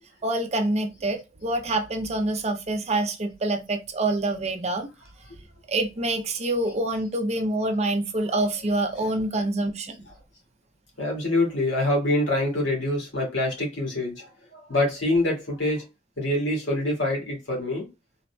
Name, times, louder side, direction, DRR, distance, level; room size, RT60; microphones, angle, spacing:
voice 1, 0.2-4.9 5.7-10.0, right 2 dB, 35° right, 0.6 m, -26 dB
voice 2, 11.0-15.8 16.2-17.9, left 1 dB, 85° left, 1.7 m, -25 dB
3.9 x 2.8 x 2.2 m
head